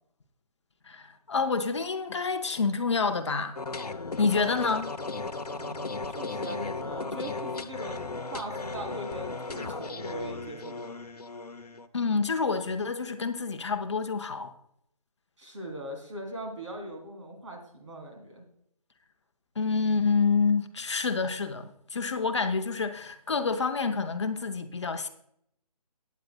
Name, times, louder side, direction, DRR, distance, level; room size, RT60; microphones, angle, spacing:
voice 1, 0.9-3.6 4.2-4.9 11.9-14.5 19.6-25.1, left 4 dB, 45° left, 0.8 m, -28 dB
sound 1, 3.6-11.9, left 3 dB, 80° left, 0.8 m, -36 dB
voice 2, 5.5-11.0 15.4-18.4, right 1 dB, 50° right, 3.0 m, -40 dB
15.0 x 9.3 x 2.2 m
figure-of-eight pair, 155°, 20 cm